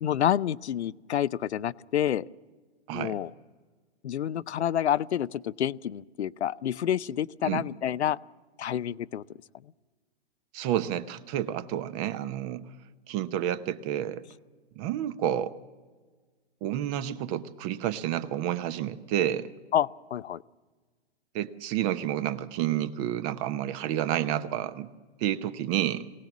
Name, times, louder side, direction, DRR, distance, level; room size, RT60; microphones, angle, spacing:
voice 1, 0.0-2.3 2.9-3.3 4.0-8.2 8.6-9.2 19.7-20.4, left 10 dB, 85° left, 16 dB, 0.6 m, -28 dB
voice 2, 10.5-12.7 13.1-14.2 14.8-15.5 16.6-19.5 21.3-24.9 25.2-26.1, right 11 dB, 35° right, 14 dB, 0.9 m, -30 dB
23.0 x 17.5 x 7.3 m, 1.4 s
hypercardioid pair, 125°, 33 cm